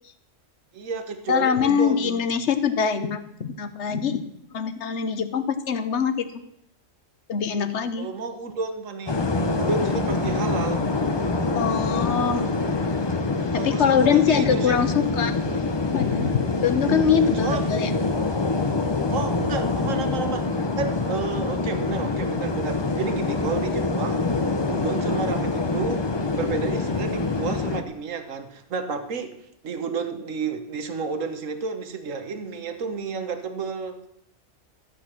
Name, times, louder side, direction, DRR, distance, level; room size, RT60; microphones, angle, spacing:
voice 1, 0.7-2.2 8.0-9.3 9.5-10.9 13.6-14.8 16.8-17.7 19.1-20.5 20.8-24.3 24.6-26.1 26.4-29.4 29.6-34.0, right 5 dB, 80° right, 8 dB, 1.5 m, -31 dB
voice 2, 1.3-4.2 4.5-6.2 7.3-8.1 11.5-12.4 13.6-15.3 15.9-16.3 16.6-17.9, left 7 dB, 65° left, 11 dB, 1.2 m, -23 dB
sound 1, 9.1-27.8, left 3 dB, 25° left, 0.6 m, -25 dB
14.0 x 8.3 x 6.0 m, 0.75 s
omnidirectional pair, 1.3 m